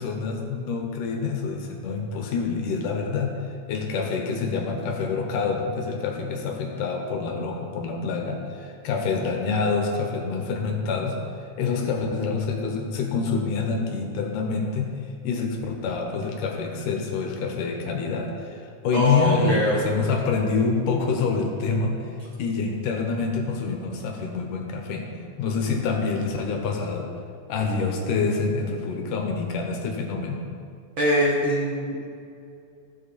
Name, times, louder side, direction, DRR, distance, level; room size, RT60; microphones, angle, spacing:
voice 1, 0.0-3.3 3.7-11.2 11.6-14.9 15.2-22.0 22.4-25.1 25.4-27.1 27.5-30.4, left 4 dB, 80° left, 2 dB, 2.7 m, -26 dB
voice 2, 18.9-20.1 31.0-32.0, equal, 60° right, -4 dB, 1.3 m, -23 dB
14.5 x 7.6 x 4.2 m, 2.5 s
omnidirectional pair, 3.7 m